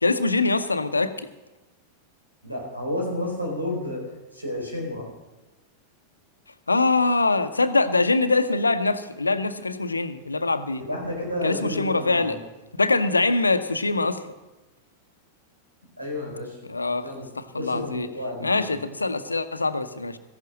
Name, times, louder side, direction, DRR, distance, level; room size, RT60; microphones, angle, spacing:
voice 1, 0.0-1.3 6.7-10.8 11.4-12.4 12.8-14.2 16.6-17.1 17.4-18.1 18.4-20.2, left 3 dB, 80° left, 11 dB, 0.8 m, -23 dB
voice 2, 2.4-4.0 4.3-5.0 10.7-12.4 16.0-16.5 17.0-17.3 17.5-18.8, left 1 dB, 85° right, -1 dB, 4.6 m, -31 dB
14.5 x 11.0 x 6.3 m, 1.1 s
figure-of-eight pair, 90°, 0 cm